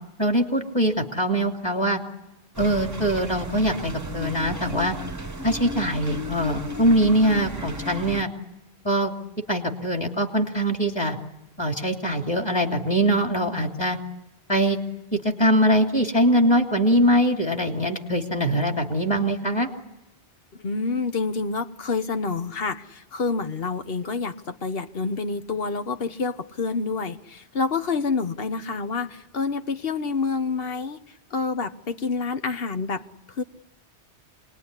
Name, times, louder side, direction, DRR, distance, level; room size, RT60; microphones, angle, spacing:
voice 1, 0.2-2.0 2.6-4.9 5.4-8.3 8.8-9.1 9.5-11.2 11.6-14.0 14.5-14.8 15.4-19.7, right 1 dB, 20° left, 3 dB, 3.0 m, -22 dB
sound 1, 2.5-8.2, equal, 15° right, 1.1 m, -34 dB
voice 2, 20.6-31.0 31.3-33.4, left 4 dB, 60° left, 9 dB, 1.4 m, -28 dB
27.5 x 20.5 x 9.8 m, 0.98 s
omnidirectional pair, 1.2 m